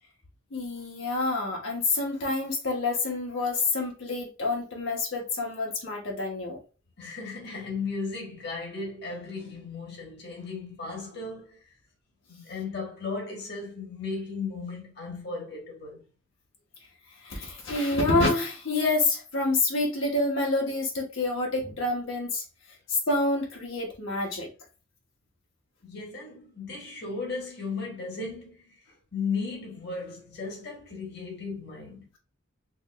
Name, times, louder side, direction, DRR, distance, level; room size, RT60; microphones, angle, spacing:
voice 1, 0.5-6.6 17.2-22.4 22.9-24.5, left 2 dB, 90° left, 1.1 m, -27 dB
voice 2, 7.0-11.6 12.3-16.0 24.2-24.3 25.8-28.8 29.1-32.1, left 4 dB, 60° left, 1.3 m, -36 dB
4.5 x 3.0 x 2.3 m
head